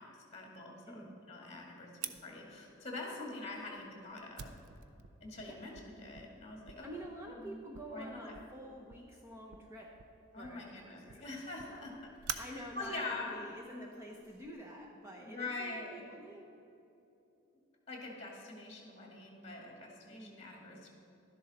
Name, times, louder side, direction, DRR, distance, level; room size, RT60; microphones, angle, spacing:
voice 1, 0.0-4.5 5.2-6.9 7.3-7.6 7.9-8.3 10.3-11.9 12.3-13.4 15.2-16.1 17.9-20.9, left 2 dB, 30° left, 0 dB, 2.2 m, -44 dB
voice 2, 0.9-1.2 3.2-3.4 5.4-5.6 6.8-10.0 10.4-11.3 11.7-16.5 20.1-20.4, equal, 15° right, -2 dB, 0.8 m, -48 dB
Fire, 2.0-14.5, right 8 dB, 85° right, 0.6 m, -50 dB
12.0 x 10.5 x 4.2 m, 2.8 s
head